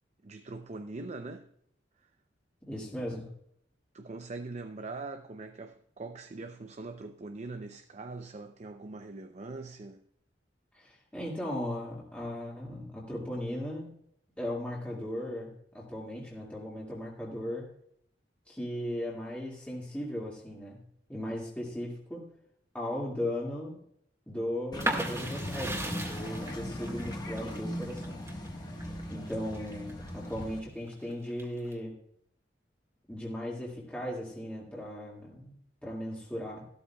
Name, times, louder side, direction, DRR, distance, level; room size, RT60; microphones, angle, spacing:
voice 1, 0.2-1.5 2.0-2.1 3.9-10.0, right 3 dB, 40° right, 0.5 m, -42 dB
voice 2, 2.6-3.3 10.7-14.0 14.4-17.7 18.5-20.8 21.1-22.3 22.7-23.8 24.3-28.2 29.1-31.9 33.1-35.5 35.8-36.6, left 1 dB, 5° left, 2.1 m, -37 dB
sound 1, 24.7-30.6, equal, 20° left, 1.4 m, -39 dB
sound 2, 24.8-30.4 30.9-31.7, right 1 dB, 15° right, 1.8 m, -37 dB
13.5 x 13.0 x 2.3 m
head